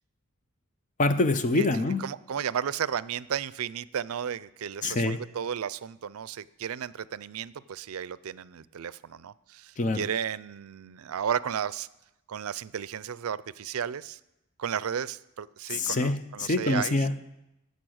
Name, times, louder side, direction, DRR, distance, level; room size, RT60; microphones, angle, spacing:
voice 1, 1.0-2.0 4.8-5.2 9.8-10.1 15.7-17.2, left 2 dB, 35° left, 11 dB, 0.5 m, -25 dB
voice 2, 2.0-11.9 12.3-14.2 14.6-17.0, right 8 dB, 80° right, 18 dB, 0.4 m, -33 dB
16.5 x 6.7 x 6.4 m, 0.90 s
head